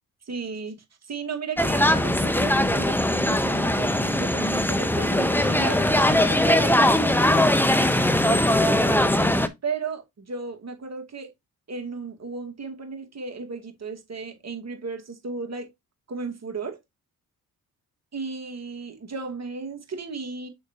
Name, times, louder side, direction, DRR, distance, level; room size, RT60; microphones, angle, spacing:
voice 1, 0.3-0.8 1.1-7.6 8.3-11.3 11.7-15.7 16.1-16.8 18.1-20.5, right 4 dB, 40° right, 2.1 m, -35 dB
sound 1, 1.6-9.5, left 1 dB, 5° left, 1.1 m, -21 dB
6.4 x 5.5 x 3.0 m
hypercardioid pair, 45°, 39 cm